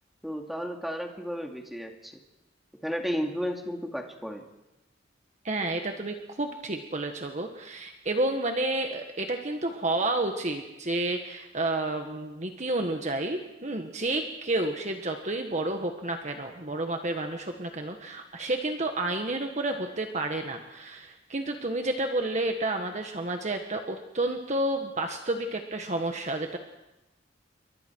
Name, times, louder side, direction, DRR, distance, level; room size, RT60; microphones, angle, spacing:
voice 1, 0.2-2.1 2.8-4.4, equal, ahead, 2 dB, 2.3 m, -33 dB
voice 2, 5.4-26.6, right 2 dB, 40° right, 4 dB, 1.6 m, -30 dB
28.5 x 23.5 x 4.7 m, 0.95 s
head